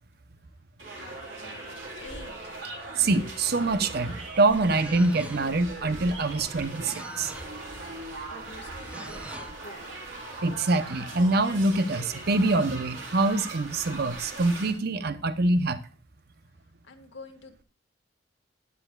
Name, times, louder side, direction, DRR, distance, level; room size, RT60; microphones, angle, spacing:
sound 1, 0.8-14.7, right 2 dB, 75° right, 4.2 m, -40 dB
voice 1, 1.0-2.6 8.2-9.8 16.8-17.6, left 2 dB, 70° left, 2.0 m, -48 dB
voice 2, 2.9-7.3 10.4-15.8, right 2 dB, 55° right, 0.8 m, -25 dB
sound 2, 4.1-5.7 6.4-7.6 8.6-9.6, right 1 dB, 5° right, 0.7 m, -46 dB
12.5 x 10.0 x 2.4 m
head